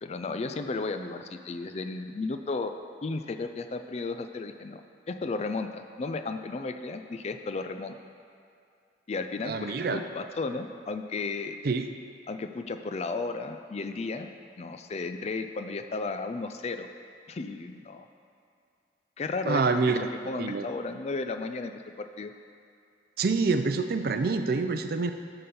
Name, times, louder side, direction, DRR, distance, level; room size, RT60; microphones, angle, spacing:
voice 1, 0.0-2.7 3.0-4.8 5.1-8.0 9.1-11.6 12.3-14.3 14.6-16.9 17.3-18.1 19.2-20.0 20.3-22.3, left 3 dB, 35° left, 8 dB, 0.4 m, -34 dB
voice 2, 9.4-10.0 11.6-11.9 19.4-20.1 20.4-20.6 23.2-25.1, right 4 dB, 55° right, 8 dB, 0.5 m, -26 dB
11.0 x 3.9 x 6.7 m, 2.5 s
head